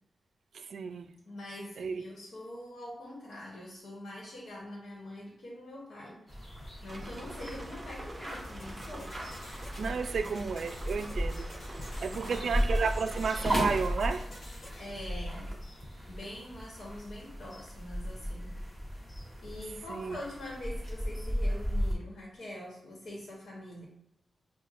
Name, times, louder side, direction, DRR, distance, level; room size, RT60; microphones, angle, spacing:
voice 1, 0.5-1.1 1.8-2.0 9.8-11.5 12.0-14.3 19.9-20.2, right 5 dB, 70° right, 8 dB, 0.3 m, -32 dB
voice 2, 1.2-6.2 6.8-9.2 9.9-10.4 12.1-12.6 14.8-15.5 16.1-18.6 19.4-23.8, left 1 dB, 70° left, -5 dB, 1.3 m, -44 dB
sound 1, 6.3-21.9, equal, 15° left, 1.5 m, -36 dB
sound 2, 6.9-13.9, right 1 dB, 25° right, 0.7 m, -46 dB
sound 3, 8.6-14.9, left 1 dB, 55° left, 0.8 m, -49 dB
6.4 x 2.3 x 2.5 m, 0.85 s
wide cardioid pair, 165°, 0 cm